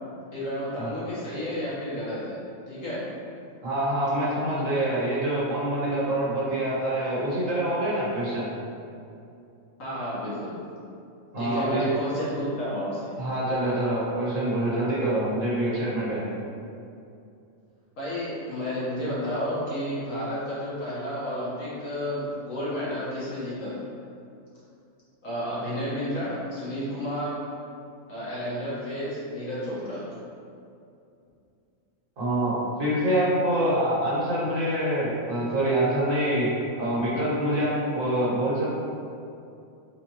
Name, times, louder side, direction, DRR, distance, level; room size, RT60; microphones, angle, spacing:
voice 1, 0.3-2.4 2.7-3.1 9.8-10.5 11.4-13.1 18.0-23.7 25.2-27.4 28.1-30.0, equal, 70° left, -9 dB, 1.8 m, -31 dB
voice 2, 3.6-8.5 11.3-11.9 13.2-16.2 32.2-36.5 36.8-38.7, right 1 dB, 70° right, -7 dB, 1.7 m, -25 dB
4.2 x 4.2 x 3.0 m, 2.6 s
omnidirectional pair, 1.4 m